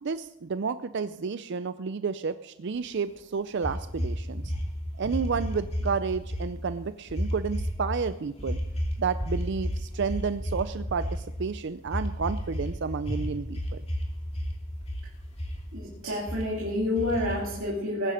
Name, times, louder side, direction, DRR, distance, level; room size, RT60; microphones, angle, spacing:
voice 1, 0.0-4.5 5.0-8.6 9.0-13.8, right 5 dB, 55° right, 12 dB, 0.4 m, -31 dB
sound 1, 3.6-5.9 6.1-6.5 7.1-8.0 8.4-11.3 11.9-12.7 13.0-14.1 14.3-15.0 15.3-15.9 16.3-16.4 17.0-17.6, equal, 30° left, 2.7 m, -31 dB
voice 2, 15.7-18.1, left 1 dB, 70° right, -2 dB, 2.6 m, -29 dB
20.0 x 9.9 x 5.1 m, 0.89 s
head